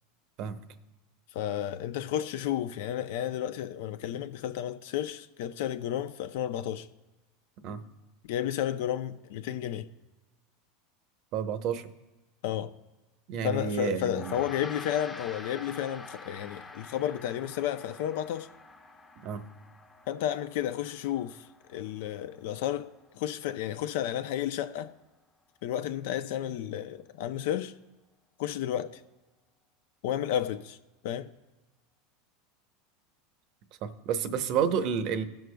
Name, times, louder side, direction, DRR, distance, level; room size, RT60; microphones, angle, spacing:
voice 1, 1.3-6.9 8.2-9.9 12.4-12.7 13.4-18.5 20.1-24.9 25.6-27.7 28.4-29.0 30.0-30.8 31.0-31.3, left 11 dB, 70° left, 0.5 m, -32 dB
voice 2, 11.3-11.9 13.3-14.3 19.2-19.4 33.8-35.2, right 7 dB, 55° right, 0.8 m, -30 dB
Gong, 14.1-23.7, left 3 dB, 20° left, 0.9 m, -47 dB
17.5 x 6.4 x 2.3 m
supercardioid pair, 115°, 0 cm